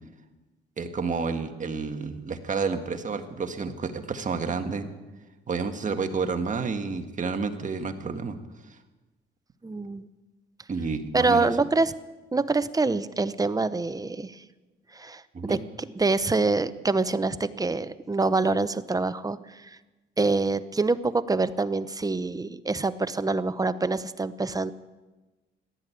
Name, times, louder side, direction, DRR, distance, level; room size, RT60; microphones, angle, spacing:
voice 1, 0.8-4.9 5.5-8.4 10.7-11.5 15.3-15.6, right 4 dB, 40° right, 6 dB, 1.6 m, -30 dB
voice 2, 9.6-10.1 11.1-11.9 12.3-14.4 14.9-19.8 20.2-24.7, right 3 dB, 20° right, 14 dB, 0.7 m, -26 dB
16.0 x 11.0 x 8.4 m, 1.2 s
cardioid pair, 90°, 20 cm